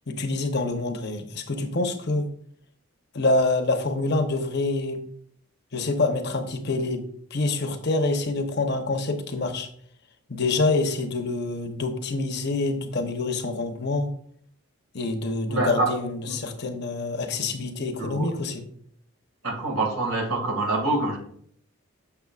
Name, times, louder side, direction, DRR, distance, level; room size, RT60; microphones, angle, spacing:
voice 1, 0.1-2.3 3.1-5.0 5.7-7.1 7.3-9.7 10.3-14.1 14.9-18.7, left 2 dB, 50° left, 6 dB, 0.8 m, -26 dB
voice 2, 15.5-16.0 16.3-16.4 18.0-18.3 19.4-21.2, right 2 dB, 85° right, 2 dB, 1.9 m, -25 dB
6.9 x 6.8 x 2.4 m, 0.63 s
head